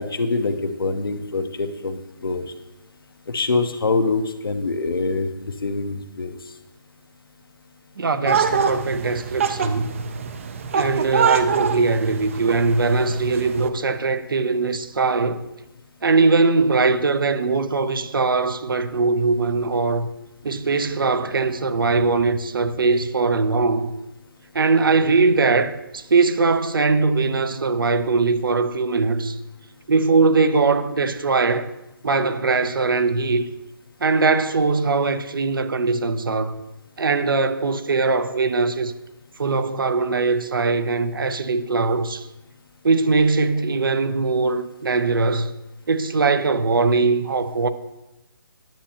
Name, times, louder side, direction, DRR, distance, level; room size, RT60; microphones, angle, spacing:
voice 1, 0.0-2.5 3.3-6.4, left 3 dB, 75° left, 0.8 m, -25 dB
voice 2, 8.0-10.0 10.7-15.4 16.0-20.1 20.4-23.9 24.5-29.4 29.9-31.7 32.0-33.5 34.0-36.5 37.0-38.9 39.4-42.3 42.8-45.6 45.9-47.7, right 4 dB, 70° right, 0.7 m, -21 dB
sound 1, 8.3-13.7, right 6 dB, 35° right, 0.5 m, -25 dB
10.5 x 7.1 x 2.9 m
figure-of-eight pair, 155°, 12 cm